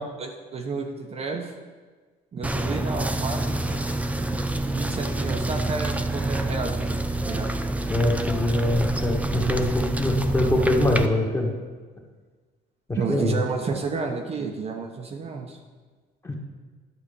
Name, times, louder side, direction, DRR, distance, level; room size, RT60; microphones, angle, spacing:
voice 1, 0.2-1.5 2.3-3.8 4.7-7.0 7.3-7.5 13.0-15.6, right 4 dB, 35° right, 2 dB, 0.9 m, -31 dB
sound 1, 2.4-11.1, right 2 dB, 10° right, 0.5 m, -27 dB
voice 2, 7.9-11.5 12.9-13.4 16.2-16.3, left 1 dB, 15° left, 0 dB, 1.7 m, -24 dB
11.0 x 4.3 x 6.9 m, 1.4 s
cardioid pair, 110°, 17 cm